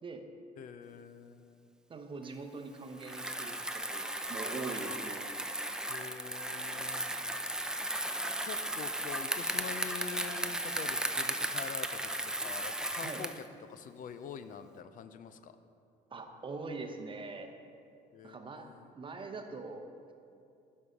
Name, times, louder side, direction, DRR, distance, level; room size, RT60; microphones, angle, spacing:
voice 1, 0.6-1.7 5.9-7.2 8.0-8.1 8.4-12.1 12.4-15.6 18.1-18.9, left 7 dB, 55° left, 11 dB, 0.5 m, -45 dB
voice 2, 1.9-5.3 13.0-13.2 16.1-17.5 18.2-18.7 18.9-19.9, right 3 dB, 30° right, 5 dB, 0.9 m, -42 dB
Bicycle, 3.0-13.5, right 1 dB, 5° right, 0.4 m, -36 dB
11.0 x 5.4 x 5.1 m, 2.5 s
cardioid pair, 110°, 17 cm